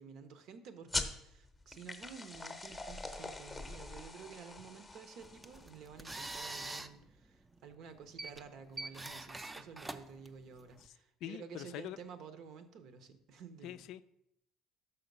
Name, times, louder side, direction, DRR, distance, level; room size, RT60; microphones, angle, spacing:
voice 1, 0.0-13.8, right 6 dB, 65° right, 10 dB, 0.8 m, -52 dB
sound 1, 0.9-6.0, left 2 dB, 10° left, 0.7 m, -42 dB
sound 2, 5.2-10.9, right 2 dB, 15° right, 0.4 m, -46 dB
voice 2, 11.2-12.0 13.6-14.0, left 12 dB, 70° left, 14 dB, 0.3 m, -44 dB
5.8 x 5.6 x 5.3 m, 0.80 s
cardioid pair, 110°, 0 cm